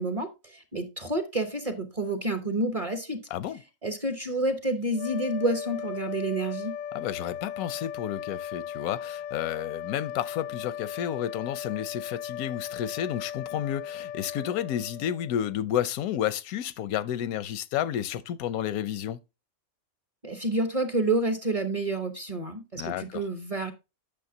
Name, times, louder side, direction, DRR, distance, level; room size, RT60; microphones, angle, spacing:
voice 1, 0.0-3.2 3.8-6.7 20.2-23.7, right 2 dB, 30° right, 0.8 m, -29 dB
voice 2, 3.3-3.6 6.9-19.2 22.8-23.2, left 10 dB, 85° left, 1.0 m, -31 dB
sound 1, 4.9-15.5, left 9 dB, 55° left, 0.5 m, -37 dB
8.7 x 6.3 x 2.7 m
omnidirectional pair, 1.5 m